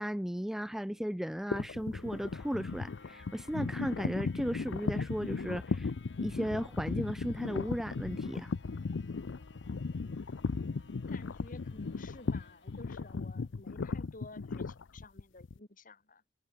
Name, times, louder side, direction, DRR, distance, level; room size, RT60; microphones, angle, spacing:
voice 1, 0.0-5.9 6.2-8.5, equal, ahead, 0.3 m, -35 dB
sound 1, 0.6-13.6, left 3 dB, 70° left, 4.3 m, -59 dB
sound 2, 1.5-15.6, left 4 dB, 85° left, 0.6 m, -36 dB
voice 2, 11.1-16.2, left 2 dB, 45° left, 2.7 m, -53 dB
head